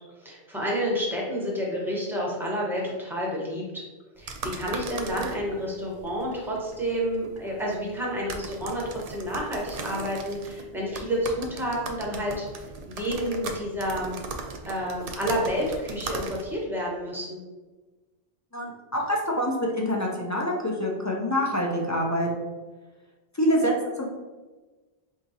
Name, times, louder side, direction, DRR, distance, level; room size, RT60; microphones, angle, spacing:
voice 1, 0.2-3.8 4.2-12.5 12.9-14.2 14.6-17.4, equal, ahead, -3 dB, 0.9 m, -29 dB
sound 1, 4.2-16.7, right 3 dB, 55° right, 0.4 m, -39 dB
voice 2, 18.5-22.5 23.3-24.1, equal, 25° left, -1 dB, 0.3 m, -26 dB
4.3 x 3.6 x 2.8 m, 1.2 s
omnidirectional pair, 1.1 m